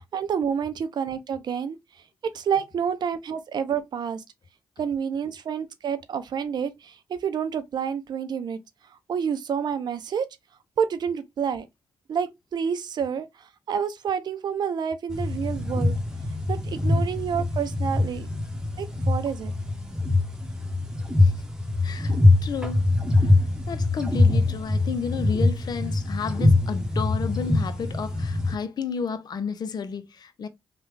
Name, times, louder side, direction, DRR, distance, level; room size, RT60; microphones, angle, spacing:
voice 1, 0.0-1.8 2.2-4.2 4.8-8.6 9.1-10.3 10.8-11.7 12.1-16.0 16.5-18.3 18.8-19.5 22.1-22.3, right 7 dB, 70° right, 0.5 m, -29 dB
sound 1, 15.1-28.6, left 2 dB, 10° right, 0.9 m, -23 dB
voice 2, 21.8-22.1 22.4-22.9 23.2-23.3 23.7-30.5, left 6 dB, 65° left, 0.6 m, -32 dB
3.2 x 2.2 x 3.1 m
supercardioid pair, 40°, 8 cm